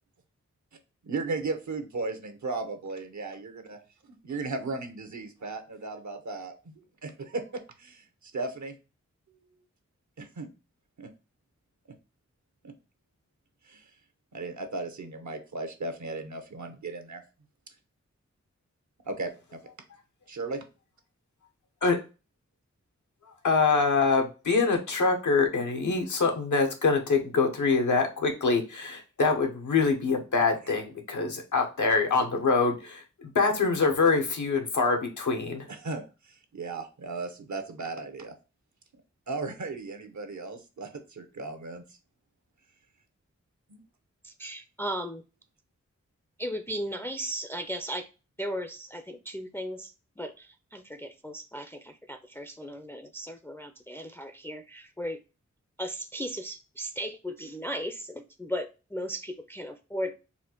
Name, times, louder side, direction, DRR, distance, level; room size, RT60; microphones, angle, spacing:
voice 1, 1.1-3.8 4.2-6.7 7.0-7.4 7.8-8.8 10.2-10.5 11.0-11.1 12.6-12.7 13.6-13.9 14.3-17.2 19.1-19.3 20.3-20.6 30.6-30.7 35.7-38.3 39.3-41.8 43.7-43.8, right 3 dB, 75° right, 7 dB, 0.9 m, -36 dB
voice 2, 23.4-33.0 33.3-35.6, left 4 dB, 90° left, 3 dB, 1.0 m, -25 dB
voice 3, 44.2-45.2 46.4-48.1 48.4-55.2 55.8-60.2, equal, 10° left, 6 dB, 0.4 m, -36 dB
4.2 x 2.4 x 4.3 m, 0.31 s
wide cardioid pair, 55°, 29 cm